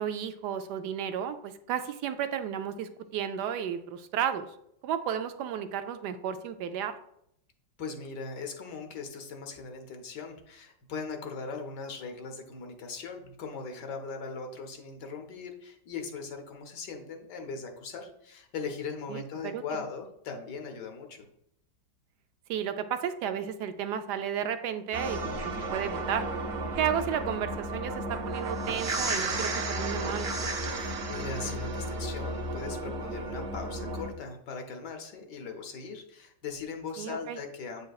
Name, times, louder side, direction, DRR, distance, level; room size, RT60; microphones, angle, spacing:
voice 1, 0.0-4.5 4.8-6.9 19.1-19.6 22.5-26.3 26.8-30.3 37.0-37.4, right 9 dB, 75° right, 9 dB, 1.1 m, -33 dB
voice 2, 7.8-21.3 25.7-25.8 30.7-37.9, left 4 dB, 70° left, 4 dB, 1.4 m, -39 dB
sound 1, 24.9-34.1, right 2 dB, 55° right, 0.7 m, -33 dB
8.3 x 5.2 x 2.3 m, 0.73 s
omnidirectional pair, 2.0 m